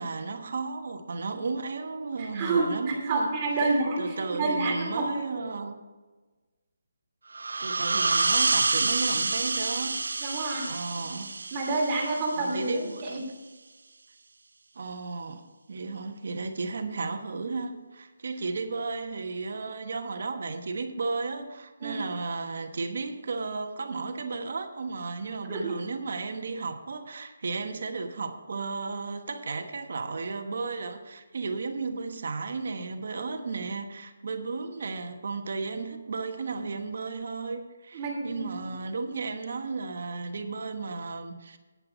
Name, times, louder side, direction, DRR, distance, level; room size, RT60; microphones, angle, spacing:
voice 1, 0.0-3.3 3.6-5.8 7.6-10.0 10.7-11.3 12.4-13.3 14.7-41.6, right 4 dB, 60° right, 6 dB, 1.2 m, -34 dB
voice 2, 2.2-5.1 10.2-10.8 11.5-13.2 21.8-22.0 25.5-25.7 37.9-38.6, right 3 dB, 25° right, -2 dB, 2.7 m, -29 dB
sound 1, 7.3-12.7, right 3 dB, 80° right, 0.5 m, -28 dB
9.6 x 8.8 x 5.1 m, 1.3 s
hypercardioid pair, 165°, 0 cm